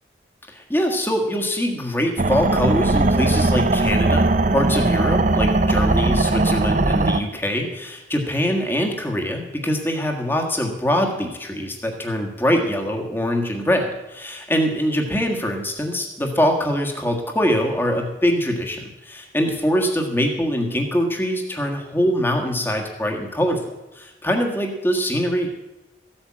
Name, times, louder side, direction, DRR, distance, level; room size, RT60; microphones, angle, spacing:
voice 1, 0.5-23.6 23.9-25.5, equal, 10° left, 2 dB, 1.6 m, -23 dB
sound 1, 2.2-7.2, right 2 dB, 45° right, 0.6 m, -19 dB
14.5 x 8.8 x 7.4 m, 1.0 s
head